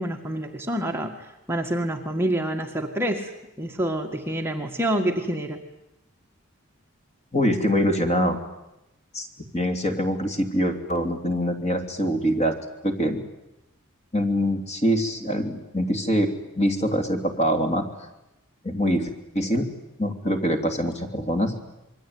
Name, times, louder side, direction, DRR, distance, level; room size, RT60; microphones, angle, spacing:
voice 1, 0.0-3.3 3.6-5.6, right 1 dB, 10° right, 2 dB, 1.8 m, -27 dB
voice 2, 7.3-8.4 9.1-9.3 9.5-12.6 12.8-13.2 14.1-17.9 18.6-19.1 19.3-19.7 20.0-21.5, equal, 30° left, 5 dB, 3.0 m, -24 dB
27.0 x 22.5 x 9.5 m, 0.92 s
head